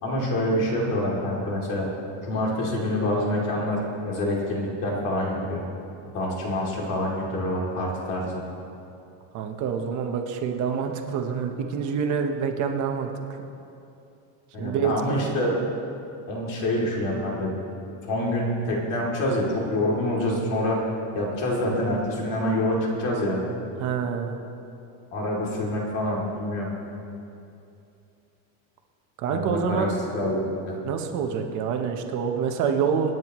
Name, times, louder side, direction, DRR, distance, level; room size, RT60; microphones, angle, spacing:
voice 1, 0.0-1.9 2.3-5.6 6.1-8.4 14.5-15.5 16.3-17.5 18.0-20.8 21.1-23.4 25.1-26.7 29.3-29.9 30.1-30.8, left 1 dB, 50° left, -3 dB, 2.9 m, -26 dB
voice 2, 9.3-13.1 14.6-15.3 23.8-24.4 29.2-29.9 30.8-33.2, right 6 dB, 45° right, 4 dB, 1.1 m, -27 dB
26.0 x 9.3 x 3.1 m, 2.7 s
cardioid pair, 175°, 42 cm